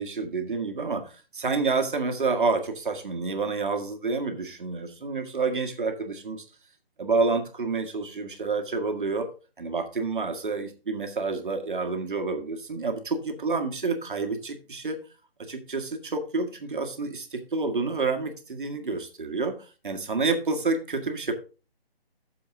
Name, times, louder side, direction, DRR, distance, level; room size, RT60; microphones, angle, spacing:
voice 1, 0.0-6.4 7.0-9.3 9.6-15.0 15.5-21.3, right 4 dB, 50° right, 5 dB, 1.7 m, -29 dB
9.3 x 6.9 x 3.8 m, 0.34 s
figure-of-eight pair, 165°, 31 cm